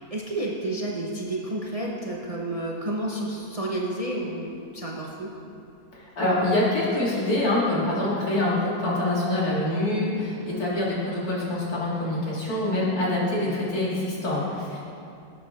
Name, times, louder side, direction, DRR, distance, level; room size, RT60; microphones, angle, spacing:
voice 1, 0.0-5.3 13.2-13.7, right 1 dB, 25° right, -3 dB, 1.0 m, -31 dB
voice 2, 5.9-14.8, left 1 dB, 70° left, -6 dB, 3.1 m, -25 dB
18.0 x 8.6 x 3.7 m, 2.5 s
omnidirectional pair, 1.7 m